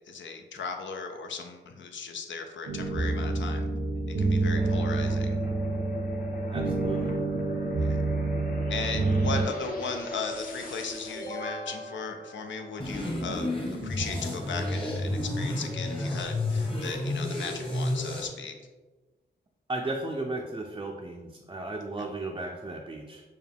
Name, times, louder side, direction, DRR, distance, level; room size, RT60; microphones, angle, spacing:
voice 1, 0.0-3.7 4.1-5.4 7.8-8.0 8.7-13.5 13.8-18.5 22.0-22.1, left 4 dB, 90° left, 5 dB, 0.4 m, -37 dB
sound 1, 2.7-9.4, right 3 dB, 85° right, 0.8 m, -28 dB
sound 2, 4.5-13.2, left 2 dB, 50° left, 0.7 m, -38 dB
voice 2, 6.5-7.1 19.7-23.2, right 2 dB, 25° right, 1 dB, 0.4 m, -35 dB
sound 3, 12.8-18.3, left 1 dB, 30° left, 1.0 m, -31 dB
4.6 x 2.2 x 3.4 m, 1.3 s
wide cardioid pair, 80°, 19 cm